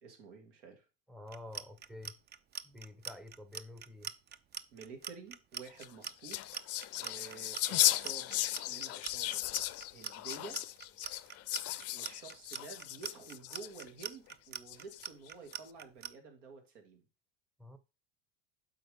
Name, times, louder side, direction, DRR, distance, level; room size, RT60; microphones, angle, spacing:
voice 1, 0.0-0.8 4.7-6.6 7.0-8.4 8.7-9.4 9.9-10.6 11.9-17.0, right 5 dB, 80° right, 2.3 m, -50 dB
voice 2, 1.1-2.2 2.6-4.1 17.6-17.8, left 2 dB, ahead, 0.8 m, -49 dB
Clock, 1.3-16.1, right 9 dB, 30° right, 0.5 m, -43 dB
sound 1, 5.7-14.1 14.7-15.3, left 15 dB, 40° left, 0.5 m, -35 dB
7.8 x 4.8 x 3.4 m
supercardioid pair, 95°, 37 cm